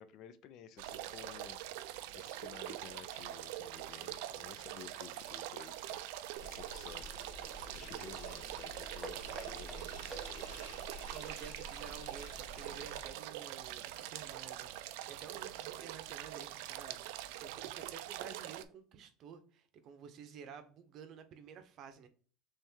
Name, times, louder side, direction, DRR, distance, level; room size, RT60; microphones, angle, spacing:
voice 1, 0.0-1.6 2.1-6.0 6.4-7.1 7.7-9.9, left 9 dB, 55° left, 0.4 m, -53 dB
sound 1, 0.8-18.6, right 13 dB, 75° right, 0.3 m, -44 dB
sound 2, 6.4-13.1, equal, 75° left, 1.3 m, -50 dB
sound 3, 6.7-10.7, right 1 dB, 5° right, 0.5 m, -53 dB
voice 2, 11.0-22.1, right 7 dB, 50° right, 0.7 m, -52 dB
3.5 x 3.2 x 4.3 m
supercardioid pair, 125°, 0 cm